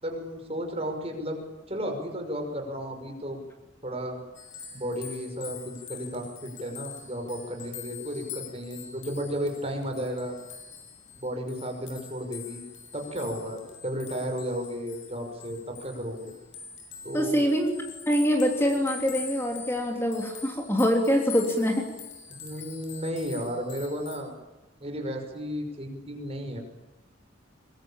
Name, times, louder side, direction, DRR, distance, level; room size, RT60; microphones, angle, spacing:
voice 1, 0.0-1.4 1.7-3.4 3.8-4.2 4.7-10.3 11.1-12.6 12.9-16.3 17.0-17.4 22.4-24.3 24.8-26.6, equal, 30° right, 4 dB, 5.8 m, -33 dB
sound 1, 4.3-24.2, left 7 dB, 80° left, 6.5 m, -44 dB
voice 2, 17.1-17.7 18.1-21.9, equal, 10° left, 2 dB, 3.2 m, -24 dB
23.0 x 23.0 x 8.8 m, 1.1 s
head